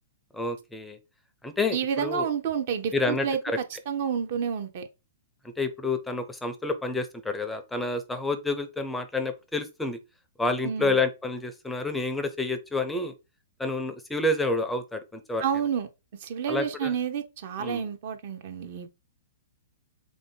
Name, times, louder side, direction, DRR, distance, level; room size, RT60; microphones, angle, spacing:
voice 1, 0.3-1.0 1.4-2.3 2.9-3.6 5.6-10.0 10.4-13.1 13.6-15.4 16.5-16.9 17.6-17.9, left 2 dB, 5° left, 0.5 m, -29 dB
voice 2, 1.7-4.8 10.6-11.0 15.4-15.9 16.2-19.0, right 7 dB, 50° right, 0.7 m, -30 dB
3.6 x 2.6 x 3.5 m
figure-of-eight pair, 115°, 0 cm